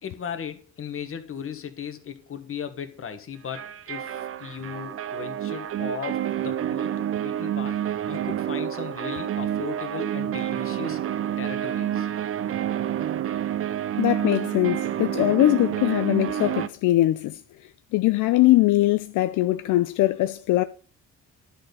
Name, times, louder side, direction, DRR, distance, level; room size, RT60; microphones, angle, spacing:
voice 1, 0.0-7.8 8.1-11.0 11.4-12.1, left 7 dB, 45° left, 1.4 m, -37 dB
sound 1, 3.5-16.7, right 11 dB, 50° right, 0.5 m, -28 dB
voice 2, 14.0-17.4 17.9-20.6, left 16 dB, 80° left, 0.5 m, -21 dB
11.0 x 4.2 x 6.8 m
cardioid pair, 90°, 30 cm